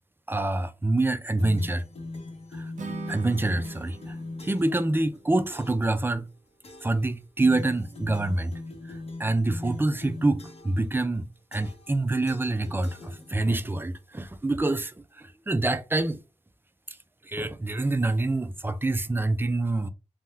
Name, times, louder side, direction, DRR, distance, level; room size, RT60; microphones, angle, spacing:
voice 1, 0.3-1.8 2.5-2.7 3.1-4.2 4.4-6.3 6.8-8.5 9.2-16.2 17.3-19.9, right 2 dB, 15° right, 0.4 m, -26 dB
sound 1, 1.4-4.8 5.5-5.9 6.6-7.0 7.4-10.8 11.5-12.0 12.3-13.6, left 2 dB, 50° left, 0.8 m, -41 dB
Acoustic guitar / Strum, 2.8-6.0, right 4 dB, 65° right, 0.8 m, -42 dB
3.4 x 2.2 x 2.7 m
cardioid pair, 70°, 13 cm